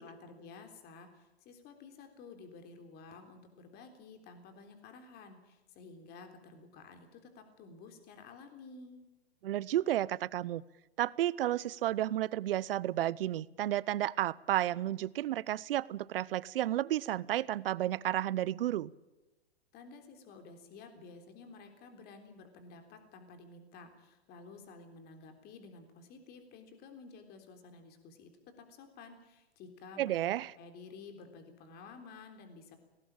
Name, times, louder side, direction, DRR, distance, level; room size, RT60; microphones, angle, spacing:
voice 1, 0.0-9.0 19.7-28.3 28.7-32.8, left 4 dB, 30° left, 6 dB, 3.6 m, -52 dB
voice 2, 9.4-10.6 11.0-18.9 30.0-30.5, right 13 dB, 65° right, 22 dB, 0.8 m, -32 dB
18.5 x 18.0 x 8.8 m, 1.0 s
hypercardioid pair, 130°, 31 cm